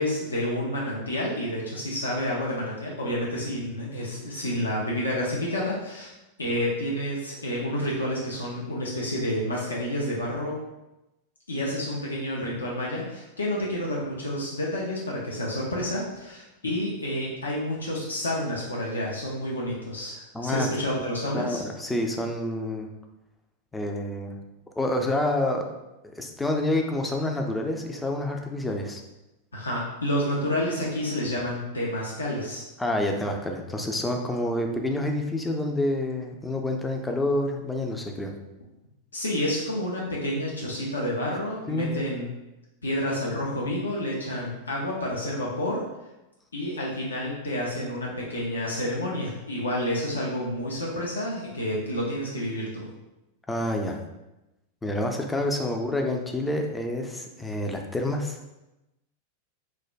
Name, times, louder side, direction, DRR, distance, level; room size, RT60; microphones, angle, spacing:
voice 1, 0.0-6.1 6.4-10.6 11.5-21.6 29.5-32.6 39.1-42.3 42.8-45.8 46.5-52.9, left 1 dB, 75° left, -4 dB, 0.5 m, -29 dB
voice 2, 20.3-20.7 21.3-22.9 23.7-24.4 24.8-25.6 26.1-29.0 32.8-38.3 41.7-41.9 53.5-54.0 54.8-58.5, left 1 dB, 10° left, 3 dB, 0.4 m, -28 dB
3.2 x 2.1 x 2.4 m, 0.97 s
figure-of-eight pair, 90°, 0 cm